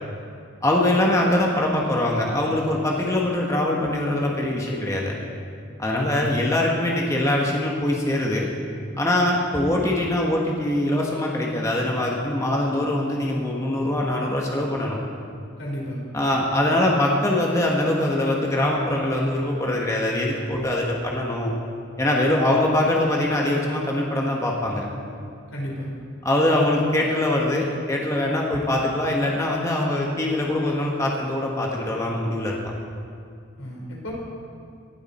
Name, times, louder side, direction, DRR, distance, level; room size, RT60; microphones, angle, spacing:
voice 1, 0.6-5.2 5.8-8.5 9.0-15.0 16.1-21.5 22.0-24.9 26.2-32.6, left 1 dB, 15° left, -2 dB, 1.3 m, -23 dB
voice 2, 6.0-6.3 15.6-16.0 25.5-25.9 33.6-34.1, equal, 90° left, -3 dB, 4.1 m, -33 dB
18.5 x 12.0 x 4.3 m, 2.3 s
head